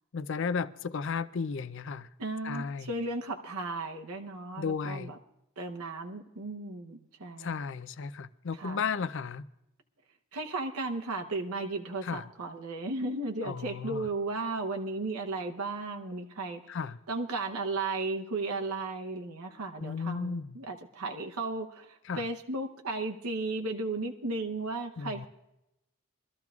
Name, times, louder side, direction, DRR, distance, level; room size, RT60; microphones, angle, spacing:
voice 1, 0.1-2.1 2.4-2.9 4.6-5.1 7.4-9.4 12.0-12.2 13.4-14.1 16.7-17.0 19.8-20.6 22.1-22.2 25.0-25.3, left 5 dB, 55° left, 0.4 m, -34 dB
voice 2, 2.2-5.2 5.6-7.5 8.5-8.8 10.3-16.6 17.1-25.3, right 3 dB, 85° right, 0.9 m, -35 dB
23.5 x 13.5 x 2.4 m
head